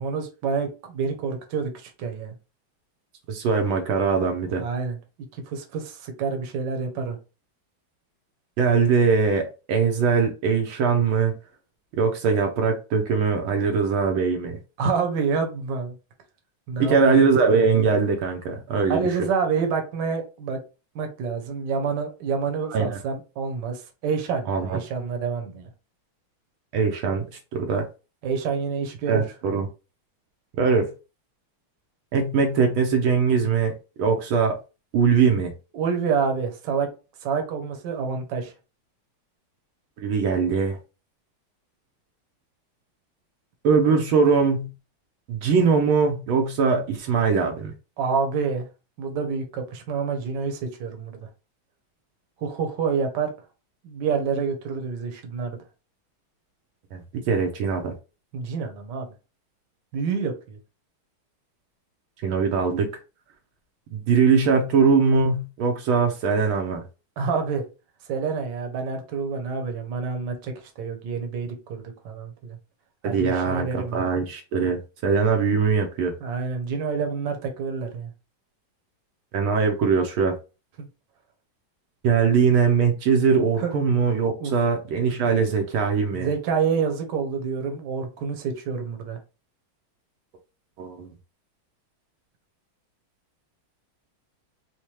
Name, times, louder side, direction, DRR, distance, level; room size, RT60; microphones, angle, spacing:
voice 1, 0.0-2.3 4.6-5.0 5.5-7.2 14.8-15.9 16.7-17.3 18.9-20.6 20.9-25.7 28.2-29.3 35.7-36.9 37.2-38.5 48.0-48.7 49.0-51.2 52.4-53.3 53.8-55.6 58.3-59.1 59.9-60.6 67.2-67.6 68.1-72.6 73.0-74.0 76.2-78.1 83.6-83.7 84.4-84.5 86.1-89.2, right 5 dB, 65° right, 1.4 m, -28 dB
voice 2, 3.3-4.6 8.6-11.3 11.9-14.6 16.8-19.0 22.7-23.0 24.5-24.8 26.7-27.2 27.5-27.9 29.1-29.7 30.6-30.9 32.1-34.6 34.9-35.5 40.0-40.8 43.6-44.7 45.3-47.7 56.9-57.9 62.2-62.9 63.9-66.8 73.0-76.1 79.3-80.4 82.0-86.3 90.8-91.1, right 5 dB, 80° right, 1.5 m, -21 dB
4.3 x 2.2 x 3.1 m
omnidirectional pair, 2.3 m